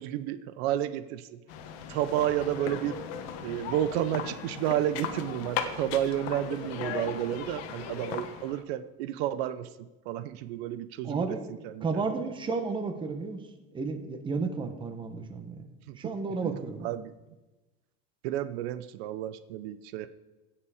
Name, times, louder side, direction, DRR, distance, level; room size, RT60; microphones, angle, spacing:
voice 1, 0.0-1.4 1.9-3.0 3.4-11.9 15.9-16.5 16.8-17.1 18.2-20.1, right 12 dB, 80° right, 12 dB, 0.7 m, -31 dB
sound 1, 1.5-8.6, left 7 dB, 70° left, 1.3 m, -37 dB
voice 2, 11.0-11.4 11.8-13.4 13.7-16.9, right 4 dB, 15° right, 7 dB, 0.9 m, -32 dB
16.5 x 5.6 x 4.9 m, 1.1 s
cardioid pair, 160°, 31 cm